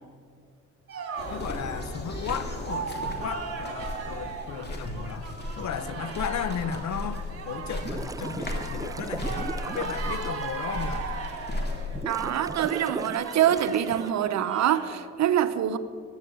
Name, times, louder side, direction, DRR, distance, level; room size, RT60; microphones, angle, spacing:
sound 1, 0.9-15.0, right 5 dB, 50° right, 2.6 m, -38 dB
sound 2, 1.2-12.0, left 2 dB, 35° left, 2.9 m, -36 dB
voice 1, 1.3-5.3 5.6-11.1, left 7 dB, 65° left, 13 dB, 1.0 m, -35 dB
sound 3, 7.7-10.5 11.1-11.2 11.9-14.1, right 3 dB, 10° right, 0.4 m, -37 dB
voice 2, 12.0-15.8, right 10 dB, 65° right, 11 dB, 0.9 m, -25 dB
16.5 x 10.5 x 7.0 m, 2.2 s
cardioid pair, 90°, 30 cm